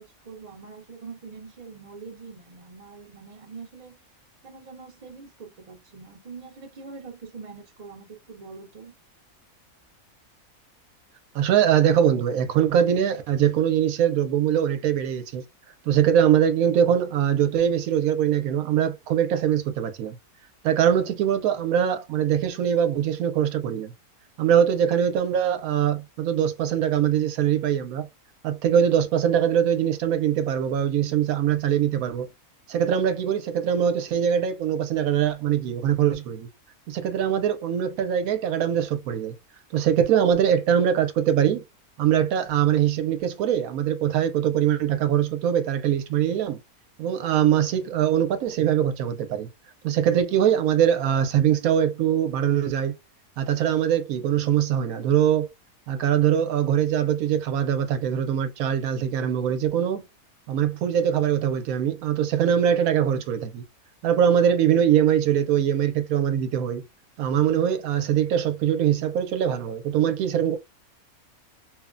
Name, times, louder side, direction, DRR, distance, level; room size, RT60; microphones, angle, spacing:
voice 1, 0.0-4.0 4.4-9.0, right 4 dB, 45° right, 0.5 m, -43 dB
voice 2, 11.3-15.4 15.9-20.2 20.6-23.9 24.4-28.1 28.4-32.3 32.7-36.5 36.9-39.3 39.7-41.6 42.0-46.6 47.0-49.5 49.8-52.9 53.4-55.5 55.9-60.0 60.5-63.6 64.0-66.8 67.2-70.6, right 9 dB, 75° right, 1.0 m, -22 dB
2.9 x 2.1 x 2.4 m
omnidirectional pair, 1.5 m